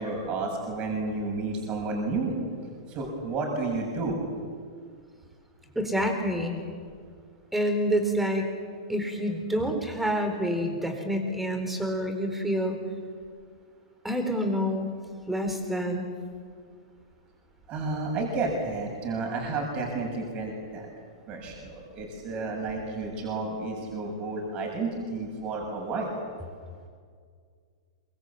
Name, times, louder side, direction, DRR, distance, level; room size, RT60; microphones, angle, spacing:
voice 1, 0.0-2.4 2.9-4.2 17.7-20.9 21.3-26.1, right 3 dB, 35° right, 1 dB, 7.0 m, -31 dB
voice 2, 5.8-6.6 7.5-8.4 8.9-12.8 14.0-14.9 15.3-16.1, equal, 5° right, 5 dB, 4.4 m, -27 dB
24.5 x 21.5 x 8.5 m, 2.1 s
hypercardioid pair, 125°, 3 cm